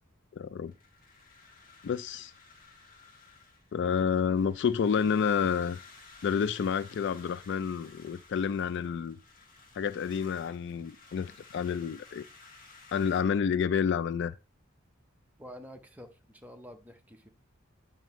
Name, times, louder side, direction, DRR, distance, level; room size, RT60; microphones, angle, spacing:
voice 1, 0.4-0.7 1.8-2.3 3.7-5.8 6.2-9.2 9.8-12.2 12.9-14.3, left 7 dB, 60° left, 0.3 m, -29 dB
sound 1, 0.6-13.2, left 4 dB, 45° left, 1.4 m, -55 dB
voice 2, 15.4-17.3, equal, 10° right, 0.7 m, -48 dB
9.1 x 5.4 x 3.1 m
head